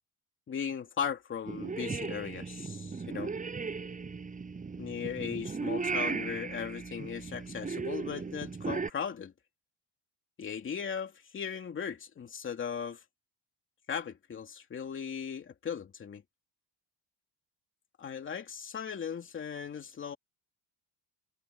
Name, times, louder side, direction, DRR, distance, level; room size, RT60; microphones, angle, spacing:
voice 1, 0.5-3.3 4.8-9.3 10.4-13.0 13.9-16.2 18.0-20.2, left 7 dB, 30° left, 2.8 m, -37 dB
Purr / Meow, 1.5-8.9, right 4 dB, 20° right, 7.6 m, -36 dB
cardioid pair, 170°, 42 cm